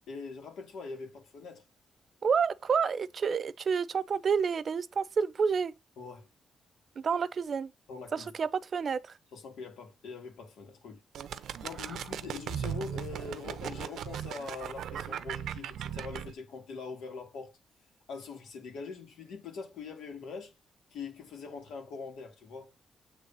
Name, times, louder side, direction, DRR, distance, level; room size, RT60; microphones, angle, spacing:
voice 1, 0.1-1.6 6.0-6.3 7.9-8.3 9.3-11.0 11.6-17.6 18.1-20.5 20.9-22.7, left 5 dB, 90° left, 2.4 m, -43 dB
voice 2, 2.2-5.7 7.0-7.7 8.1-9.2 11.9-12.0, right 6 dB, 45° right, 0.6 m, -29 dB
sound 1, 11.1-16.3, right 9 dB, 85° right, 0.7 m, -38 dB
8.2 x 3.4 x 5.4 m
cardioid pair, 125°, 0 cm